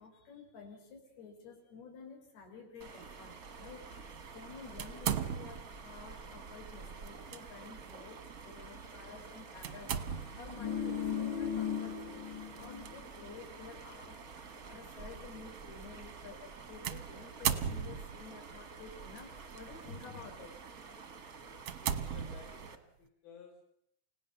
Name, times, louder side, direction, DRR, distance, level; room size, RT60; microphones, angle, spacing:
voice 1, 0.0-20.6 21.0-21.1, left 4 dB, 90° left, 1 dB, 6.4 m, -51 dB
sound 1, 2.8-22.8, right 5 dB, 50° right, 1.0 m, -49 dB
sound 2, 4.8-5.8 7.0-7.4 7.9-8.0 9.6-10.5 12.6-12.9 13.7-13.8 16.8-18.3 19.2-19.6 20.2-20.4 20.9-21.0 21.6-22.8, right 8 dB, 65° right, 1.5 m, -36 dB
sound 3, 10.2-12.9 13.2-13.3, left 8 dB, 45° left, 1.4 m, -37 dB
voice 2, 21.7-23.6, left 5 dB, 75° left, 0 dB, 4.7 m, -56 dB
30.0 x 17.0 x 6.9 m, 0.75 s
omnidirectional pair, 4.4 m